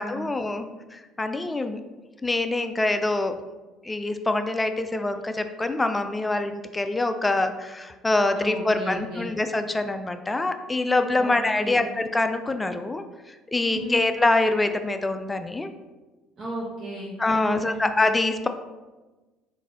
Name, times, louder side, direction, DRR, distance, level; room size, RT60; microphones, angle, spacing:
voice 1, 0.0-1.8 2.2-3.4 3.8-15.7 17.2-18.5, left 2 dB, 20° left, 8 dB, 0.3 m, -25 dB
voice 2, 8.3-9.3 11.2-11.8 13.7-14.0 16.4-17.2 17.4-17.9, right 1 dB, 45° right, -7 dB, 1.1 m, -34 dB
3.9 x 2.6 x 3.6 m, 1.2 s
hypercardioid pair, 70°, 0 cm